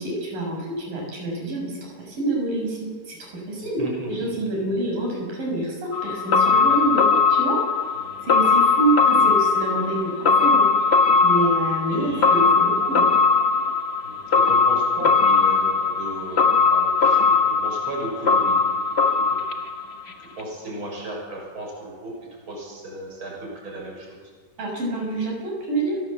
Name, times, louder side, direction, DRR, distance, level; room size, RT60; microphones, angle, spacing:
voice 1, 0.0-3.8 4.1-7.6 8.2-10.7 11.2-13.1 24.6-26.0, right 2 dB, 85° right, -1 dB, 9.0 m, -27 dB
voice 2, 3.8-4.5 6.5-6.9 8.0-8.2 9.1-9.4 11.3-11.6 11.9-12.7 14.0-18.6 19.3-19.4 20.2-22.1 22.5-24.2, right 1 dB, 35° right, -1 dB, 7.3 m, -35 dB
sound 1, 5.9-20.1 20.4-20.5, left 4 dB, 65° left, 0.6 m, -20 dB
29.5 x 18.5 x 8.0 m, 1.5 s
omnidirectional pair, 3.8 m